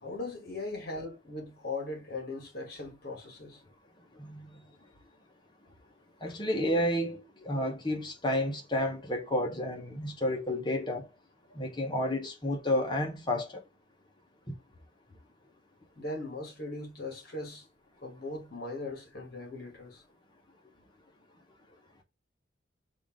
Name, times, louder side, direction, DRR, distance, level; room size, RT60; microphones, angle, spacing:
voice 1, 0.0-3.6 6.3-6.4 16.0-17.6 18.0-20.0, left 2 dB, 50° left, 1.6 m, -39 dB
voice 2, 4.2-4.5 6.2-11.1 11.5-13.6, left 1 dB, 25° left, 1.0 m, -31 dB
5.6 x 2.6 x 3.6 m
head